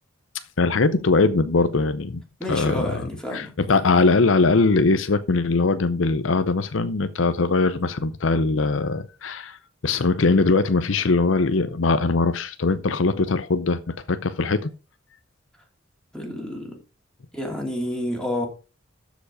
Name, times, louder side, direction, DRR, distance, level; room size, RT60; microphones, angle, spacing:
voice 1, 0.6-2.2 2.5-9.6 9.8-14.7, left 3 dB, 75° left, 0.7 m, -21 dB
voice 2, 2.4-3.5 16.1-16.8 17.3-18.5, left 1 dB, 5° left, 2.9 m, -29 dB
13.0 x 5.1 x 4.8 m
head